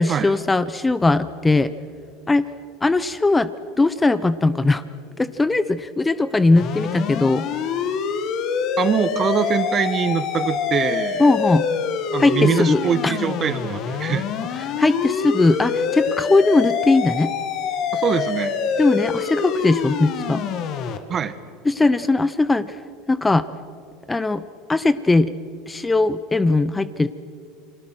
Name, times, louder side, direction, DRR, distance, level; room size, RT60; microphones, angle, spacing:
voice 1, 0.0-1.7 2.3-2.5 2.8-3.5 3.8-4.8 5.2-7.5 11.2-11.7 12.2-13.1 14.6-17.3 18.8-20.4 21.6-22.7 23.1-23.5 24.1-24.4 24.7-25.3 25.7-27.1, left 2 dB, 15° left, 14 dB, 0.8 m, -19 dB
sound 1, 6.6-21.0, left 6 dB, 50° left, 2.2 m, -25 dB
voice 2, 8.8-11.3 12.1-14.3 17.9-18.6 21.1-21.3, right 7 dB, 35° right, 12 dB, 1.5 m, -23 dB
30.0 x 22.5 x 6.2 m, 2.3 s
supercardioid pair, 100°, 0 cm